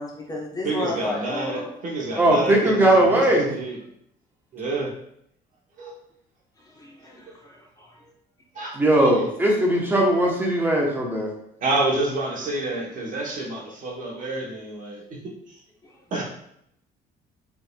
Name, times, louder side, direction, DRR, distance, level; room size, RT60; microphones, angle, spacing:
voice 1, 0.0-1.7 6.8-7.9, left 2 dB, 20° left, -3 dB, 1.0 m, -32 dB
voice 2, 0.6-3.8 4.5-4.9 5.8-5.9 8.5-9.1 11.6-15.6 16.1-16.2, right 2 dB, 50° right, -1 dB, 1.1 m, -29 dB
voice 3, 2.2-3.5 8.7-11.3, right 1 dB, 10° right, -2 dB, 1.0 m, -19 dB
4.6 x 3.4 x 2.3 m, 0.73 s
cardioid pair, 110°, 17 cm